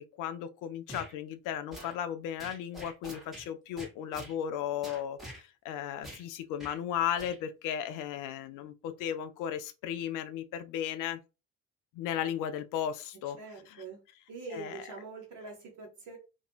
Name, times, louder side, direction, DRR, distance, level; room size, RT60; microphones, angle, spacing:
voice 1, 0.2-11.2 11.9-13.4 13.7-13.8 14.5-14.9, left 9 dB, 50° left, 0.5 m, -35 dB
sound 1, 0.9-1.1 1.7-2.0 2.4-3.5 3.8-4.3 4.8-5.4 6.0-6.2 6.6-6.8 7.2-7.4, equal, ahead, 1.2 m, -45 dB
voice 2, 13.4-14.0 14.3-16.2, right 4 dB, 50° right, 1.1 m, -44 dB
2.5 x 2.3 x 2.8 m
figure-of-eight pair, 45°, 40 cm